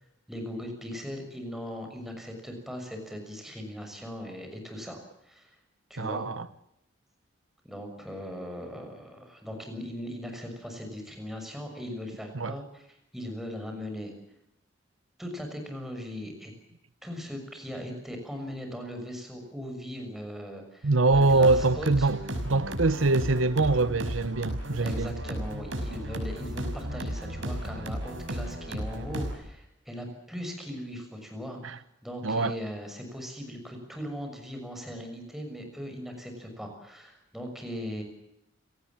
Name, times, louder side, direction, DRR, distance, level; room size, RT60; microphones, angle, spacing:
voice 1, 0.3-5.0 5.2-5.5 5.9-6.3 7.6-12.9 13.1-14.1 15.2-16.5 17.0-22.1 24.8-38.0, equal, ahead, 6.4 m, -39 dB
voice 2, 6.0-6.5 12.3-12.5 20.8-22.2 22.4-25.1 31.6-31.8 32.2-32.6, right 3 dB, 85° right, 1.1 m, -24 dB
sound 1, 21.1-29.4, equal, 70° right, 5.8 m, -34 dB
29.5 x 18.5 x 7.4 m
head